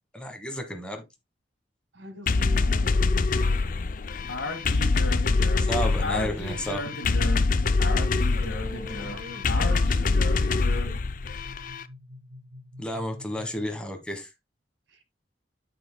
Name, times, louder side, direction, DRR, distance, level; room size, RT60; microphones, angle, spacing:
voice 1, 0.1-1.0 5.7-6.8 12.8-14.3, equal, 5° left, 1.3 m, -32 dB
voice 2, 1.9-3.9 5.3-6.8 8.3-11.0 14.9-15.0, left 1 dB, 80° right, 1.7 m, -44 dB
sound 1, 2.3-11.8, left 3 dB, 45° left, 0.5 m, -25 dB
Speech, 4.3-11.0, left 2 dB, 65° left, 1.8 m, -35 dB
sound 2, 6.3-13.9, left 2 dB, 65° right, 1.3 m, -47 dB
9.1 x 7.1 x 2.2 m
head